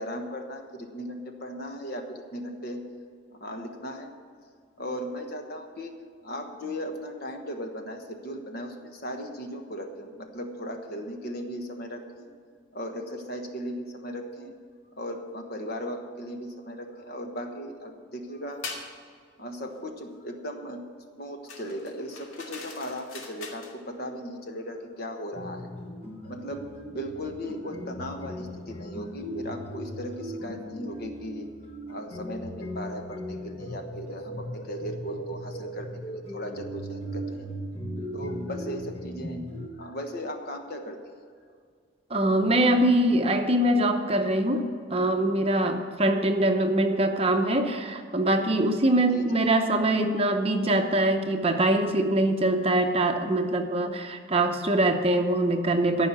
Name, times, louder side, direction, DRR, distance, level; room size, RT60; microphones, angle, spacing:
voice 1, 0.0-2.8 3.4-4.1 4.8-5.9 6.2-12.3 12.7-14.5 15.0-18.6 19.4-20.8 21.2-25.6 26.2-26.7 26.9-31.5 31.9-37.5 38.1-39.4 39.8-41.0 49.1-49.3, equal, 50° left, 4 dB, 1.3 m, -37 dB
sound 1, 18.6-18.9 21.5-23.8, left 4 dB, 80° left, 1.9 m, -41 dB
sound 2, 25.3-39.7, equal, 30° left, 1.1 m, -38 dB
voice 2, 42.1-56.1, right 1 dB, 30° right, 5 dB, 0.8 m, -23 dB
14.0 x 5.7 x 9.8 m, 2.1 s
head